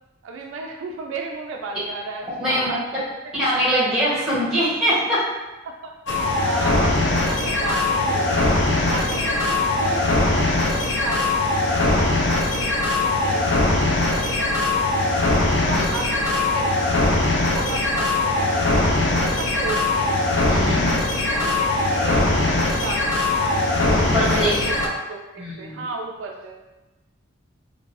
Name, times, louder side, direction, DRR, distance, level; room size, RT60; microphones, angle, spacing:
voice 1, 0.2-3.3 5.6-8.5 8.8-11.3 11.7-13.5 13.8-15.2 15.6-17.1 17.5-20.3 20.8-23.8 24.3-26.6, right 3 dB, 70° right, 2 dB, 0.3 m, -34 dB
voice 2, 3.4-5.3 15.7-15.8 20.5-20.9 23.9-24.5 25.4-25.8, equal, 5° right, -9 dB, 1.3 m, -22 dB
sound 1, 6.1-24.9, left 2 dB, 60° left, 0.5 m, -21 dB
2.6 x 2.5 x 3.2 m, 1.1 s
head